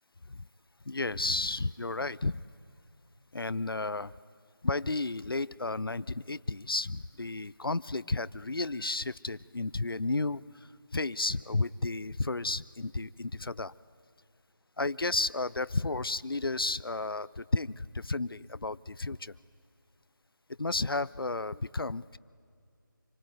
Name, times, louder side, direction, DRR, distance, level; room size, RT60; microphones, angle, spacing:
voice 1, 0.9-2.4 3.3-4.1 4.6-10.4 10.9-13.7 14.8-19.3 20.6-22.2, left 3 dB, 90° left, 19 dB, 0.6 m, -32 dB
27.0 x 20.0 x 9.2 m, 2.4 s
figure-of-eight pair, 170°, 12 cm